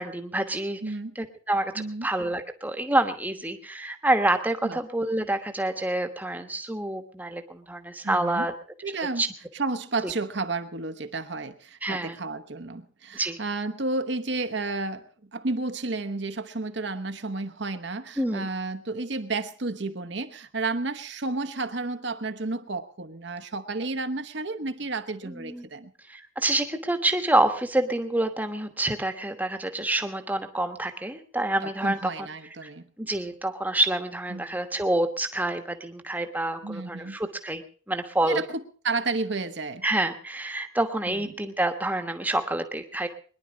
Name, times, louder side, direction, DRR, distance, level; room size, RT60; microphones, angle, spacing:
voice 1, 0.0-0.8 1.1-8.5 9.2-9.3 10.0-10.1 11.8-12.2 13.1-13.4 18.2-18.5 25.2-25.7 26.1-32.3 32.6-32.7 33.0-38.4 39.8-43.1, right 1 dB, 10° right, 1.2 m, -27 dB
voice 2, 0.8-1.1 1.7-2.1 4.6-4.8 8.0-8.5 8.8-9.2 9.5-15.1 15.3-25.9 31.6-32.9 34.3-34.6 36.6-37.2 38.3-39.8 41.1-41.3, right 3 dB, 55° right, 1.1 m, -32 dB
22.5 x 11.0 x 5.1 m
head